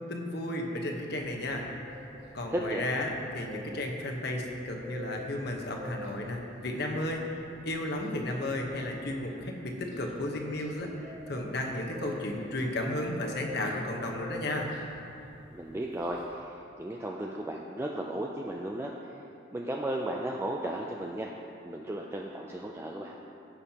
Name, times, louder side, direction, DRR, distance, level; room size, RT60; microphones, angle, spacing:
voice 1, 0.1-1.7 2.3-7.2 7.6-14.7, left 1 dB, 55° left, 1 dB, 1.1 m, -33 dB
sound 1, 1.1-16.4, left 1 dB, 65° right, 2.0 m, -48 dB
voice 2, 2.5-2.9 15.5-18.9 19.5-21.3 21.6-23.1, right 1 dB, 15° right, -1 dB, 0.3 m, -35 dB
16.0 x 6.3 x 2.9 m, 2.8 s
head